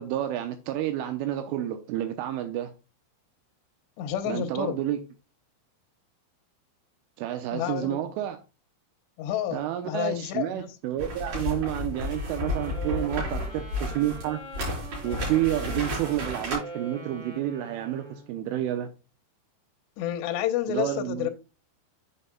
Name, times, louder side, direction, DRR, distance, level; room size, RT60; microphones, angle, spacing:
voice 1, 0.0-2.7 4.3-5.0 7.2-8.4 9.5-14.4 15.0-18.9 20.7-21.3, right 12 dB, 85° right, 3.2 m, -30 dB
voice 2, 4.0-4.8 7.5-8.0 9.2-10.7 20.0-21.3, left 11 dB, 75° left, 2.7 m, -30 dB
sound 1, 11.0-16.6, left 1 dB, 40° right, 5.7 m, -32 dB
Wind instrument woodwind instrument, 11.9-18.4, right 2 dB, 5° right, 2.3 m, -43 dB
9.2 x 6.6 x 2.3 m
omnidirectional pair, 5.9 m